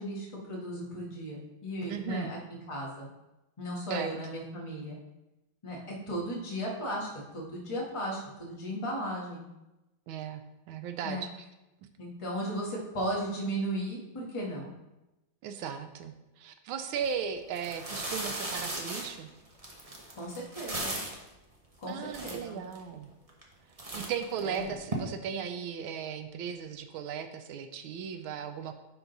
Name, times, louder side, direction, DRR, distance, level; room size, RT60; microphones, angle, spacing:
voice 1, 0.0-3.1 3.6-5.0 5.6-9.4 11.0-11.2 12.0-14.7 20.1-21.0 21.8-22.6 24.4-24.7, equal, 15° left, -3 dB, 1.4 m, -36 dB
voice 2, 1.9-2.3 3.9-4.2 10.1-10.4 10.7-11.3 15.4-19.3 21.9-23.1 23.9-28.7, right 7 dB, 85° right, 8 dB, 1.5 m, -36 dB
sound 1, 16.9-17.1 17.5-21.3 21.8-21.9 22.1-22.8 23.3-23.5 23.8-24.9, right 1 dB, 30° right, 0.7 m, -37 dB
10.5 x 3.9 x 4.0 m, 0.97 s
omnidirectional pair, 2.2 m